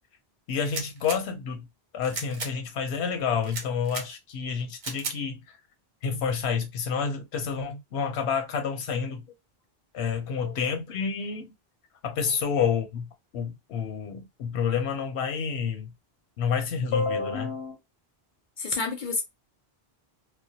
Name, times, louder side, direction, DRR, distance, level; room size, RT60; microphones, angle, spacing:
voice 1, 0.5-1.7 1.9-5.4 6.0-9.3 9.9-11.5 12.0-15.9 16.4-17.8, left 6 dB, 85° left, 0.9 m, -29 dB
sound 1, 0.6-1.2 2.0-2.5 3.4-4.1 4.8-5.2, right 4 dB, 50° right, 0.7 m, -35 dB
voice 2, 18.6-19.2, left 4 dB, 60° left, 0.6 m, -29 dB
2.2 x 2.1 x 2.7 m
omnidirectional pair, 1.1 m